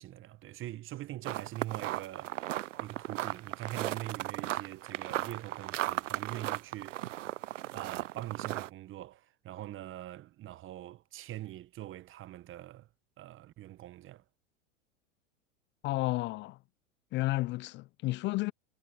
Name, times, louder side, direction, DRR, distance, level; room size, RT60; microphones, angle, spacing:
voice 1, 0.0-7.1 7.7-12.9 13.2-14.2, right 15 dB, 30° right, 1.2 m, -43 dB
sound 1, 1.2-8.7, right 14 dB, 70° right, 0.8 m, -36 dB
voice 2, 15.8-16.6 17.1-18.5, left 19 dB, 30° left, 0.5 m, -32 dB
hypercardioid pair, 100°, 39 cm